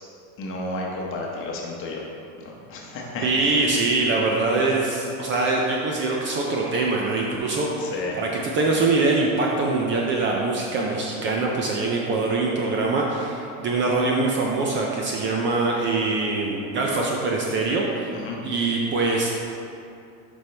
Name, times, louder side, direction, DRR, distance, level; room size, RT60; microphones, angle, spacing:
voice 1, 0.4-2.0 2.4-3.3 7.8-8.2 18.1-18.4, left 2 dB, 30° left, -2 dB, 1.0 m, -32 dB
voice 2, 3.2-18.1 18.4-19.4, right 3 dB, 30° right, -1 dB, 0.5 m, -23 dB
7.2 x 5.3 x 3.3 m, 2.6 s
supercardioid pair, 155°, 40 cm